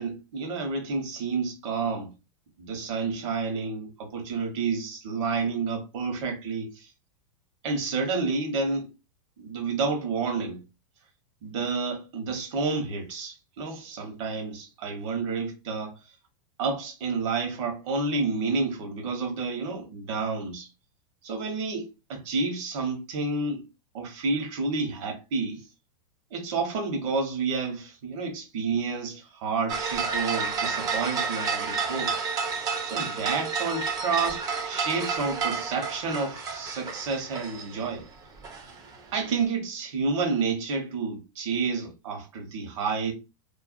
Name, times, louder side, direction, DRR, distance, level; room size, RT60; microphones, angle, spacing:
voice 1, 0.0-2.1 2.6-6.9 7.6-8.9 9.4-10.6 11.4-16.0 16.6-20.7 21.2-23.6 23.9-25.6 26.3-32.2 32.8-38.0 39.1-43.1, right 4 dB, 60° right, 1.0 m, -30 dB
sound 1, 29.7-38.1 38.4-39.3, right 5 dB, 20° right, 0.4 m, -30 dB
2.5 x 2.2 x 2.5 m
supercardioid pair, 145°, 18 cm